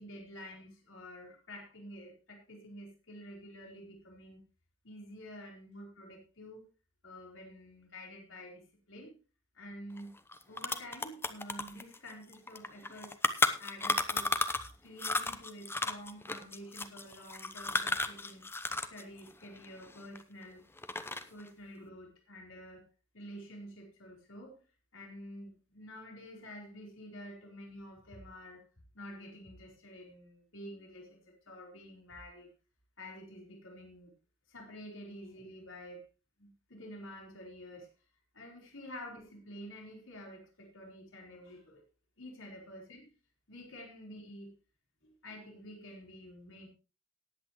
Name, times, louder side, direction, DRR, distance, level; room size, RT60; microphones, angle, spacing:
voice 1, 0.0-4.4 4.8-6.7 7.0-9.2 9.5-10.1 10.5-13.2 13.6-14.3 14.8-18.5 18.9-20.7 21.3-22.8 23.1-24.6 24.9-28.7 28.9-32.5 33.0-34.1 34.5-36.0 36.4-37.9 38.3-41.9 42.2-43.0 43.5-44.5 45.0-46.7, equal, 85° left, 1 dB, 4.3 m, -49 dB
sound 1, 10.0-10.1 10.3-14.7 15.0-19.0 19.3-20.4 20.8-21.4, left 2 dB, 10° left, 0.8 m, -33 dB
18.5 x 8.8 x 3.1 m, 0.31 s
head